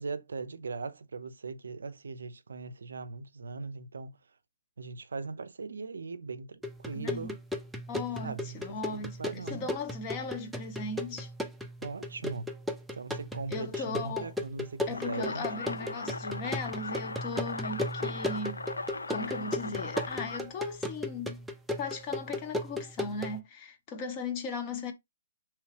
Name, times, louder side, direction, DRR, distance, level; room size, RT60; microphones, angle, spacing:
voice 1, 0.0-4.2 4.8-7.4 8.2-9.7 11.8-12.5 12.9-15.8, right 4 dB, 70° right, 0.4 m, -40 dB
sound 1, 6.6-23.4, left 1 dB, 5° right, 0.4 m, -37 dB
voice 2, 6.9-7.3 7.9-11.3 13.5-14.3 14.9-18.6 19.1-21.4 21.8-24.9, left 4 dB, 30° left, 0.7 m, -37 dB
sound 2, 14.9-20.4, left 3 dB, 80° left, 0.4 m, -38 dB
2.9 x 2.2 x 3.3 m
figure-of-eight pair, 140°, 0 cm